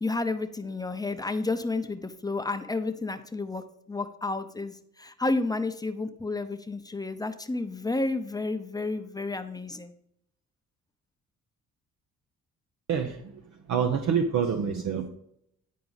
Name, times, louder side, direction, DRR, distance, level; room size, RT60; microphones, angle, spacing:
voice 1, 0.0-3.6 3.9-9.9, left 3 dB, 15° left, 8 dB, 0.7 m, -31 dB
voice 2, 12.9-13.2 13.7-15.1, right 7 dB, 70° right, 4 dB, 0.8 m, -26 dB
10.5 x 4.7 x 4.0 m, 0.73 s
cardioid pair, 90°, 30 cm